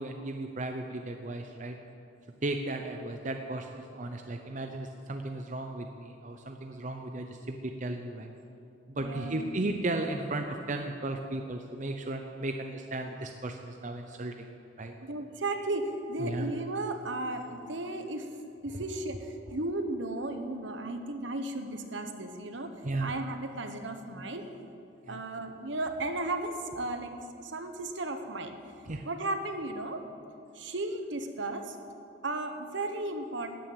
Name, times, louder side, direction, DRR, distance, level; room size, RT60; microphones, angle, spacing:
voice 1, 0.0-1.8 2.4-8.3 8.9-14.5 14.8-14.9 16.2-16.5 22.8-23.1 25.1-25.2 28.9-29.0, right 2 dB, 40° right, 4 dB, 0.7 m, -35 dB
voice 2, 8.9-9.5 15.0-18.3 18.6-22.7 23.0-24.5 25.1-28.7 29.0-30.0 30.5-31.7 32.2-33.6, right 2 dB, 65° right, 7 dB, 1.2 m, -35 dB
14.0 x 9.3 x 9.1 m, 2.7 s
head